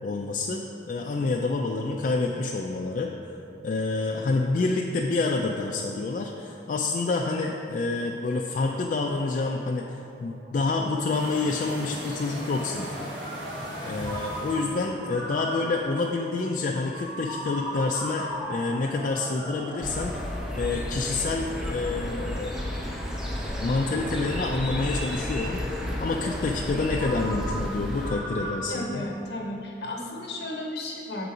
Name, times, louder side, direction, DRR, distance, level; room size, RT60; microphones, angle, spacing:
voice 1, 0.0-3.1 3.6-13.1 13.8-22.6 23.6-29.0, left 3 dB, 45° left, 0 dB, 0.3 m, -28 dB
Ringtone, 9.4-28.8, equal, 50° right, 1.2 m, -39 dB
sound 1, 11.1-14.8, equal, 90° right, 1.5 m, -38 dB
sound 2, 19.8-28.1, equal, 5° right, 0.5 m, -32 dB
voice 2, 28.7-31.3, left 1 dB, 65° left, -1 dB, 1.0 m, -34 dB
6.6 x 4.0 x 4.8 m, 2.8 s
head